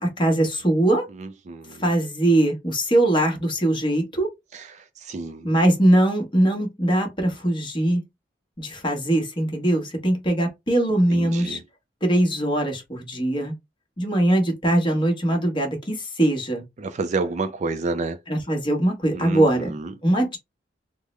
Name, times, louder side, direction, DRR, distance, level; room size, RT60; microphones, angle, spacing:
voice 1, 0.0-1.1 1.8-4.3 5.4-8.0 8.6-11.6 12.0-13.5 14.0-16.6 18.3-19.7 20.0-20.4, right 1 dB, 30° left, 1.1 m, -21 dB
voice 2, 1.2-1.9 4.5-5.5 11.1-11.6 16.8-18.2 19.1-19.9, right 3 dB, 40° right, 0.4 m, -30 dB
3.6 x 2.0 x 3.1 m
head